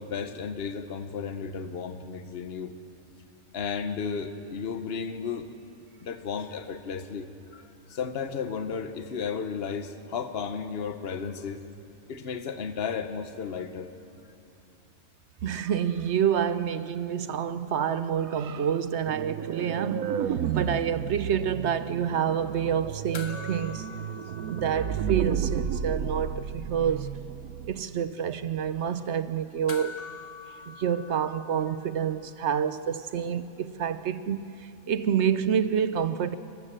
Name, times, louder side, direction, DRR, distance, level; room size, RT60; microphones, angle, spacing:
voice 1, 0.0-2.8 3.5-5.5 6.0-11.6 12.1-13.9, left 6 dB, 45° left, 1.2 m, -34 dB
voice 2, 15.4-23.9 24.5-27.2 27.6-30.0 30.7-36.3, right 8 dB, 60° right, 0.8 m, -28 dB
sound 1, 19.1-27.8, right 8 dB, 80° right, 1.2 m, -32 dB
sound 2, 23.1-25.8 26.1-26.2 29.7-32.3 34.4-34.5, left 5 dB, 75° left, 1.8 m, -45 dB
29.5 x 13.0 x 7.6 m
omnidirectional pair, 1.5 m